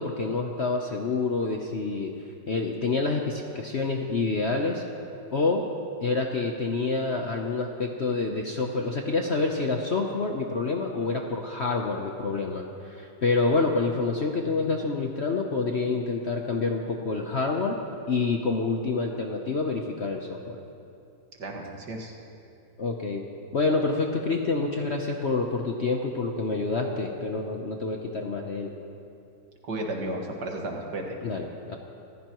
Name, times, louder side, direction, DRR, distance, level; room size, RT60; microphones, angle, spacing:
voice 1, 0.0-2.1 2.5-4.8 5.3-5.6 6.0-17.8 18.1-20.6 22.8-23.2 23.5-28.7 31.2-31.7, left 3 dB, 50° left, 2 dB, 0.9 m, -27 dB
voice 2, 21.4-22.1 29.6-31.2, right 1 dB, 65° right, 1 dB, 2.3 m, -33 dB
26.5 x 15.0 x 3.0 m, 2.7 s
omnidirectional pair, 2.0 m